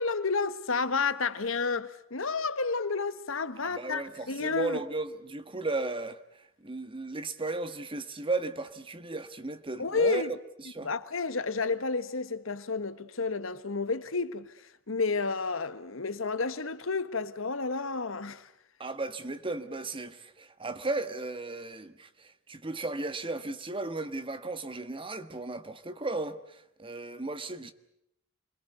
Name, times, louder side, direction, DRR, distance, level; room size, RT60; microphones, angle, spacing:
voice 1, 0.0-4.0 4.3-4.8 9.8-10.3 10.8-14.5 14.9-18.5, left 4 dB, 75° left, 1.4 m, -30 dB
voice 2, 3.6-6.2 6.6-10.9 18.8-27.7, right 3 dB, 25° right, 1.4 m, -35 dB
28.0 x 22.0 x 8.1 m
head